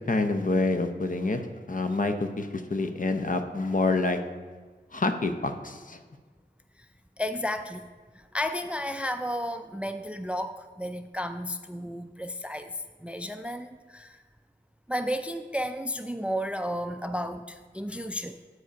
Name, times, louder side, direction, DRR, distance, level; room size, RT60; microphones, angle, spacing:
voice 1, 0.1-1.4 1.7-4.2 4.9-6.0, left 3 dB, 45° left, 7 dB, 0.7 m, -27 dB
voice 2, 7.2-7.9 8.1-14.2 14.9-18.4, equal, 5° right, 9 dB, 0.3 m, -33 dB
8.0 x 4.9 x 5.1 m, 1.4 s
cardioid pair, 40°, 19 cm